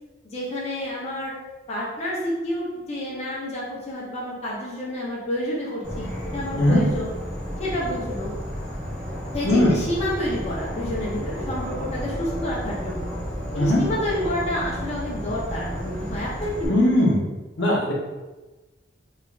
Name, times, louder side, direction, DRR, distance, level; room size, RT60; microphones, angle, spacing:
voice 1, 0.2-1.3 1.7-7.1 7.6-8.3 9.3-13.1 13.5-16.9, left 1 dB, 35° left, -6 dB, 0.6 m, -29 dB
Insect / Frog, 5.8-16.7, equal, 5° left, 1.1 m, -32 dB
voice 2, 16.7-17.2 17.6-17.9, left 1 dB, 75° left, -3 dB, 0.7 m, -19 dB
3.1 x 2.3 x 2.3 m, 1.2 s
head